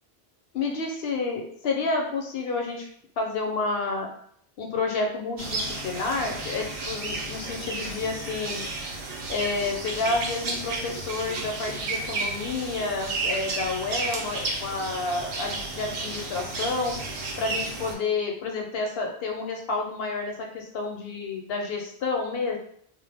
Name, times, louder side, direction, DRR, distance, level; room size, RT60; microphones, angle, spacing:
voice 1, 0.5-2.9 3.2-4.1 4.6-8.6 9.3-17.0 17.4-22.6, left 3 dB, 70° left, 2 dB, 0.8 m, -30 dB
sound 1, 5.4-17.9, right 3 dB, 90° right, 0.9 m, -32 dB
2.1 x 2.0 x 3.3 m, 0.64 s
omnidirectional pair, 1.1 m